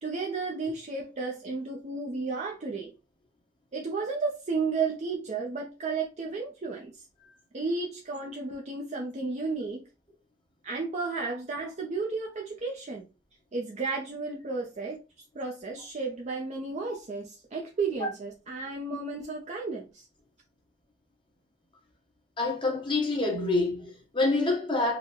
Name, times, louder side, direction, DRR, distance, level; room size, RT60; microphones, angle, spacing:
voice 1, 0.0-2.9 3.7-7.0 7.5-9.8 10.6-13.0 13.5-15.0 15.3-20.1, right 4 dB, 40° right, 0.5 m, -33 dB
voice 2, 22.4-25.0, left 2 dB, 25° left, 1.0 m, -27 dB
3.8 x 2.1 x 2.9 m
head